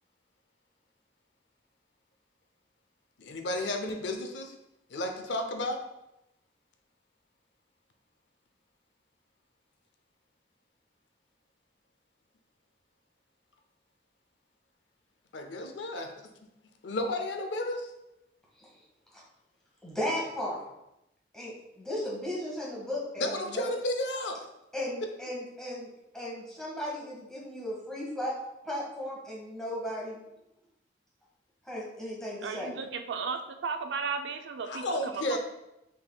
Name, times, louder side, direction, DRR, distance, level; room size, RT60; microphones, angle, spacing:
voice 1, 3.2-4.5 4.9-5.8 15.3-16.1 16.8-17.9 23.2-24.4 34.7-35.4, left 1 dB, 80° left, 5 dB, 0.6 m, -32 dB
voice 2, 19.8-20.6 21.3-23.7 24.7-25.9 26.1-28.4 28.6-30.2 31.6-32.8, left 1 dB, 5° left, -5 dB, 1.1 m, -36 dB
voice 3, 32.4-35.4, right 5 dB, 80° right, 7 dB, 0.4 m, -35 dB
5.5 x 3.6 x 2.2 m, 0.88 s
head